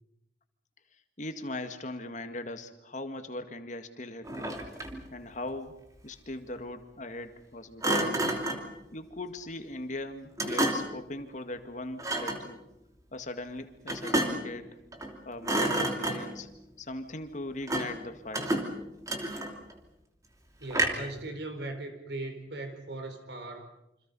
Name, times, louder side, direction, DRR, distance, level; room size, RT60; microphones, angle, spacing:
voice 1, 1.2-4.7 5.1-8.3 8.9-12.7 13.1-14.8 15.3-16.5 16.8-18.5, left 2 dB, 45° left, 7 dB, 2.1 m, -40 dB
Thump thud, 4.2-5.1 7.8-8.7 10.4-11.0 12.0-12.5 13.9-14.5 14.9-15.2 15.4-16.4 17.7-18.0 18.3-19.7 20.7-21.2, right 1 dB, 20° right, 2.9 m, -30 dB
voice 2, 20.6-23.7, right 2 dB, 70° right, 6 dB, 4.5 m, -39 dB
28.0 x 26.0 x 5.6 m, 0.87 s
head